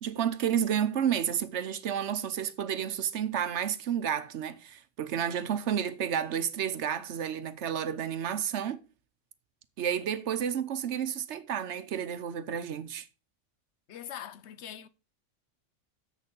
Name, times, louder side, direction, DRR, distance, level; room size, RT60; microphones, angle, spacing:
voice 1, 0.0-8.8 9.8-13.1, right 9 dB, 70° right, 1.0 m, -31 dB
voice 2, 13.9-14.9, left 10 dB, 70° left, 0.9 m, -42 dB
7.3 x 6.6 x 5.3 m
omnidirectional pair, 1.3 m